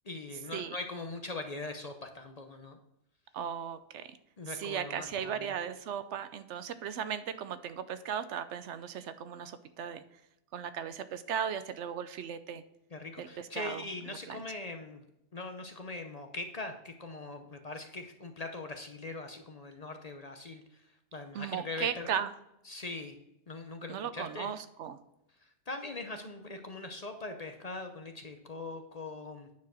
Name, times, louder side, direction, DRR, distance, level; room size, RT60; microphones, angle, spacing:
voice 1, 0.0-2.8 4.0-4.1 4.4-5.5 12.9-15.0 15.3-20.9 21.1-22.1 22.7-23.2 23.5-24.5 25.7-29.5, left 2 dB, 40° left, 6 dB, 0.7 m, -41 dB
voice 2, 3.3-4.2 4.6-10.0 10.5-12.6 13.2-13.8 14.3-14.4 21.3-22.3 23.9-25.0, right 8 dB, 75° right, 12 dB, 0.9 m, -37 dB
9.3 x 4.7 x 6.2 m, 0.83 s
omnidirectional pair, 1.2 m